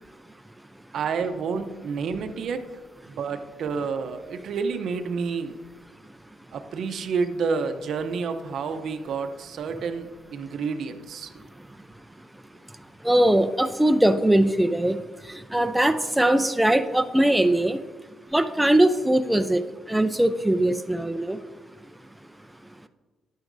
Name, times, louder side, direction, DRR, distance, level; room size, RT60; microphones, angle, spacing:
voice 1, 0.9-2.6 3.1-5.5 6.5-11.3, right 5 dB, 65° right, 9 dB, 0.7 m, -29 dB
voice 2, 13.0-15.0 15.3-17.8 18.3-19.6 19.9-21.4, right 1 dB, 5° right, 8 dB, 0.4 m, -21 dB
10.5 x 9.1 x 2.6 m, 1.3 s
cardioid pair, 90°, 0 cm